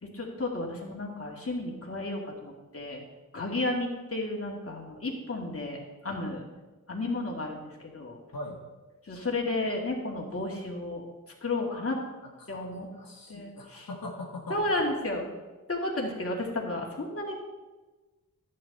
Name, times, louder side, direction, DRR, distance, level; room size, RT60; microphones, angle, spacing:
voice 1, 0.0-3.0 3.3-6.4 6.9-8.2 9.0-11.0 11.4-11.9 12.5-12.9 13.3-13.9 14.5-15.3 15.7-17.3, left 2 dB, 40° left, -2 dB, 2.5 m, -32 dB
voice 2, 11.5-11.9 12.4-14.8, left 2 dB, 85° left, -2 dB, 1.7 m, -42 dB
11.5 x 8.6 x 4.3 m, 1.2 s
cardioid pair, 50°, 34 cm